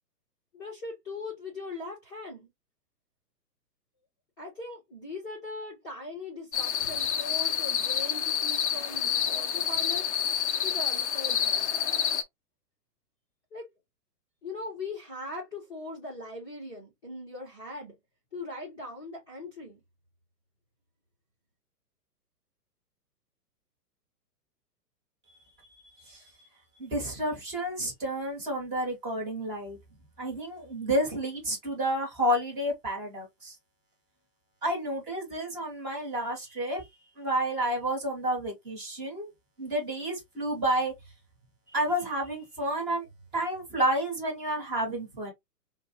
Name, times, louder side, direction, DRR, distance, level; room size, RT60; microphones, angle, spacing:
voice 1, 0.5-2.5 4.4-10.1 10.6-11.7 13.5-13.7 14.4-17.9 18.3-19.8, left 2 dB, 10° left, 0.8 m, -40 dB
sound 1, 6.5-12.2, left 8 dB, 50° left, 0.5 m, -28 dB
voice 2, 26.8-29.8 30.2-33.5 34.6-36.8 37.2-39.3 39.6-40.9 41.7-43.1 43.3-45.3, right 1 dB, 15° right, 1.1 m, -30 dB
4.4 x 2.2 x 2.9 m
hypercardioid pair, 165°, 48 cm